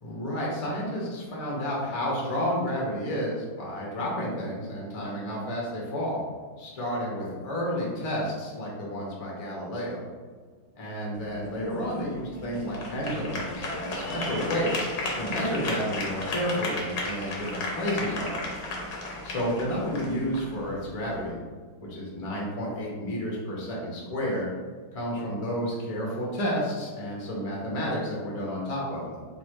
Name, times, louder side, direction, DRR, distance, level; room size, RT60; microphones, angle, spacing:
voice 1, 0.0-6.2 6.6-10.0 10.8-18.5 19.2-21.4 21.9-24.5 24.9-29.3, equal, 25° left, -4 dB, 0.8 m, -31 dB
sound 1, 11.1-21.2, left 2 dB, 60° left, 1.3 m, -34 dB
4.0 x 2.7 x 4.7 m, 1.5 s
omnidirectional pair, 2.1 m